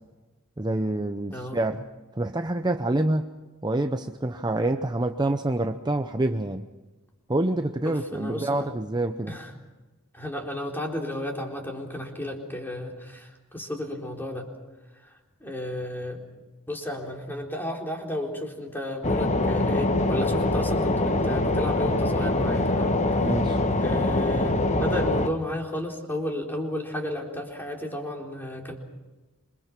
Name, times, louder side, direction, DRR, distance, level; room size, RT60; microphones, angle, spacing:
voice 1, 0.6-1.8 2.1-3.3 3.6-6.7 7.3-9.3 23.2-23.6, right 2 dB, 20° right, 7 dB, 0.7 m, -27 dB
voice 2, 1.3-1.6 7.8-8.7 9.3-9.5 10.1-14.5 15.4-16.2 16.7-22.9 23.2-23.3 23.8-28.8, left 1 dB, 10° left, 1 dB, 3.9 m, -33 dB
sound 1, 19.0-25.3, left 2 dB, 30° left, 1.2 m, -24 dB
27.0 x 24.5 x 6.1 m, 1.2 s
head